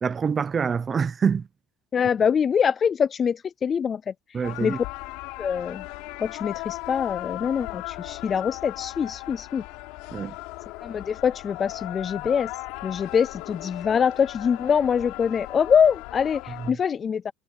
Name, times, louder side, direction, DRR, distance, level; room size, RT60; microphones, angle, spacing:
voice 1, 0.0-1.5 4.3-4.8 10.1-10.4 16.6-16.8, right 6 dB, 20° right, 0.7 m, -25 dB
voice 2, 1.9-4.1 4.6-4.8 5.4-5.8 6.2-9.6 10.8-12.5 12.8-17.3, left 7 dB, 20° left, 0.3 m, -24 dB
sound 1, 4.4-16.7, left 22 dB, 60° left, 3.9 m, -37 dB
cardioid pair, 170°, 0 cm